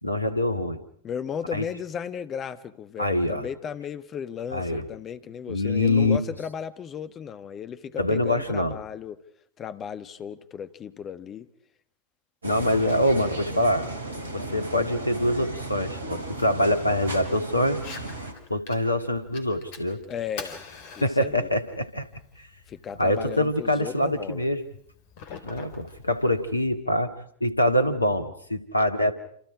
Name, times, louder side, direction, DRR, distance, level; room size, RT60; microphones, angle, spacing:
voice 1, 0.0-0.8 1.5-1.6 3.0-3.5 4.5-4.8 5.5-6.2 8.0-8.8 12.4-13.9 14.3-17.8 18.5-20.0 21.0-22.1 22.4-22.5 23.0-24.6 25.4-27.1 27.4-29.1, left 1 dB, 85° left, 2.0 m, -24 dB
voice 2, 1.0-9.2 9.6-11.5 20.1-20.6 20.9-21.5 22.7-24.4, left 8 dB, 25° left, 1.4 m, -35 dB
sound 1, 12.4-18.3, right 2 dB, 75° right, 3.3 m, -35 dB
Fire, 17.7-26.7, left 5 dB, 50° left, 4.1 m, -46 dB
28.5 x 28.5 x 4.9 m
figure-of-eight pair, 90°, 0 cm